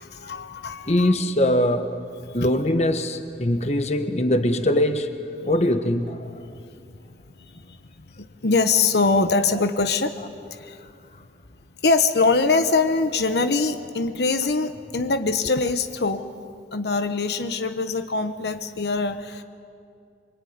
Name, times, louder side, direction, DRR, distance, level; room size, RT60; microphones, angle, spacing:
voice 1, 0.0-1.1 2.2-2.5 6.5-6.9 7.4-7.8 8.2-10.2 10.5-10.9 11.8-16.3 16.7-19.4, left 3 dB, 70° left, 8 dB, 1.1 m, -23 dB
voice 2, 0.9-1.9 2.3-5.1 5.4-6.3, left 1 dB, 40° left, 8 dB, 1.3 m, -22 dB
25.5 x 24.0 x 9.6 m, 2.4 s
head